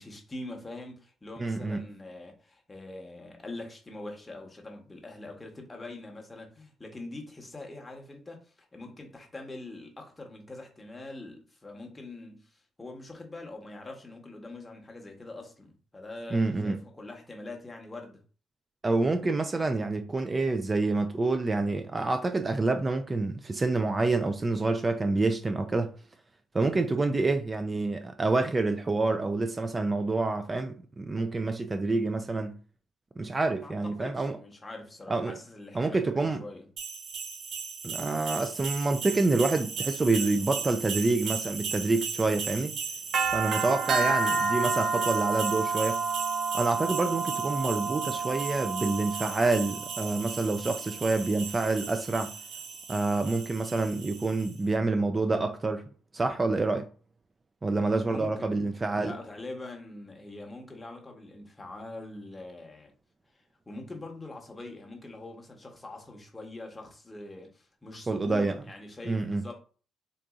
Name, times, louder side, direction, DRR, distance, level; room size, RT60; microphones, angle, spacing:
voice 1, 0.0-18.2 33.6-36.7 43.8-44.1 58.0-58.6 59.0-62.9 63.7-69.6, left 2 dB, 20° left, 0.9 m, -43 dB
voice 2, 1.4-1.8 16.3-16.8 18.8-25.9 26.5-32.6 33.2-34.4 35.1-35.4 35.7-36.4 37.8-42.7 43.3-46.0 46.5-52.3 52.9-55.8 56.1-56.9 57.6-59.1 68.1-68.6 69.0-69.4, right 3 dB, 25° right, 0.3 m, -27 dB
sound 1, 36.8-54.5, right 5 dB, 65° right, 0.7 m, -32 dB
3.8 x 2.6 x 2.3 m
cardioid pair, 90°, 0 cm